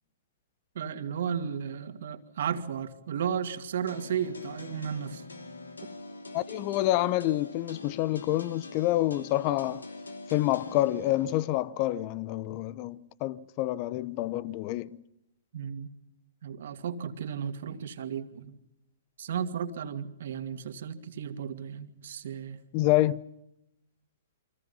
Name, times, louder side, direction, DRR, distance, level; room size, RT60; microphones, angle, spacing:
voice 1, 0.7-5.2 15.5-15.9 16.4-18.6 19.2-22.6, right 8 dB, 65° right, 2.3 m, -34 dB
sound 1, 3.9-11.5, left 3 dB, 90° left, 2.6 m, -44 dB
voice 2, 6.3-9.8 10.3-14.9 22.7-23.2, left 16 dB, 40° left, 0.9 m, -27 dB
28.5 x 24.5 x 5.6 m
hypercardioid pair, 120°, 0 cm